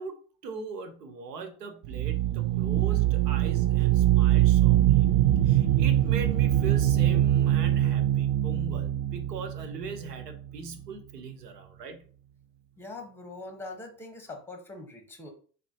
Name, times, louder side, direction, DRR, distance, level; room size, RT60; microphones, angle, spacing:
voice 1, 0.0-5.1 5.4-12.1, right 4 dB, 90° right, 0.7 m, -40 dB
sound 1, 1.8-10.5, right 13 dB, 50° right, 0.5 m, -23 dB
voice 2, 12.8-15.3, left 2 dB, 5° left, 0.9 m, -42 dB
3.7 x 2.3 x 2.7 m
hypercardioid pair, 80°, 47 cm